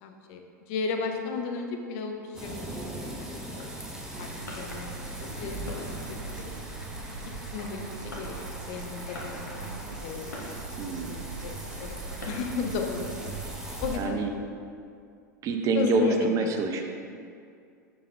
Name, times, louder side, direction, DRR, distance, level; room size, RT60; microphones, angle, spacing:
voice 1, 0.0-3.7 4.2-4.3 4.6-6.0 6.4-6.5 7.5-8.3 8.7-9.6 10.0-10.5 11.0-11.5 11.8-12.0 12.3-13.3 13.8-14.2 15.7-16.6, left 5 dB, 45° left, 3 dB, 0.6 m, -34 dB
sound 1, 2.3-14.0, right 1 dB, 5° right, 0.9 m, -40 dB
Fireworks, 3.4-13.4, left 1 dB, 75° left, 0.9 m, -47 dB
sound 2, 4.1-13.5, right 4 dB, 80° right, 0.5 m, -41 dB
voice 2, 10.8-11.2 13.9-14.3 15.4-16.8, right 4 dB, 35° right, 4 dB, 0.6 m, -26 dB
6.7 x 6.5 x 2.6 m, 2.3 s
figure-of-eight pair, 85°, 10 cm